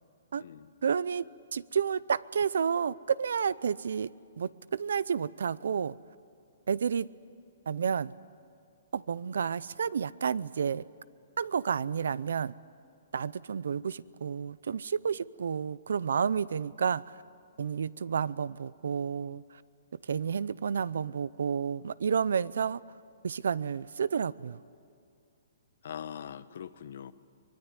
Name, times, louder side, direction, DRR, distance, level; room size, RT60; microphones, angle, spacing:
voice 1, 0.8-1.2 1.5-4.1 4.4-6.0 6.7-7.1 7.7-8.1 8.9-10.9 11.4-12.5 13.1-17.2 17.6-19.6 20.0-22.8 23.2-24.6, right 7 dB, 80° right, 21 dB, 0.6 m, -30 dB
voice 2, 25.8-27.1, left 9 dB, 65° left, 14 dB, 1.0 m, -42 dB
24.0 x 19.5 x 9.9 m, 2.4 s
hypercardioid pair, 155°, 0 cm